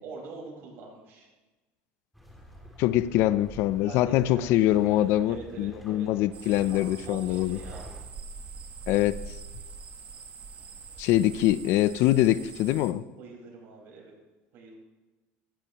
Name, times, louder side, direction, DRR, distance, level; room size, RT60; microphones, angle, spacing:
voice 1, 0.0-1.3 3.8-6.1 6.4-7.9 13.2-14.1 14.5-14.8, right 4 dB, 55° right, -1 dB, 4.9 m, -44 dB
sound 1, 2.1-8.0, equal, ahead, 2.5 m, -47 dB
voice 2, 2.8-7.6 8.9-9.2 11.0-13.0, left 14 dB, 60° left, 16 dB, 0.5 m, -24 dB
sound 2, 6.3-12.9, right 5 dB, 30° right, 1.1 m, -44 dB
16.5 x 12.0 x 3.0 m, 1.2 s
cardioid pair, 135°, 5 cm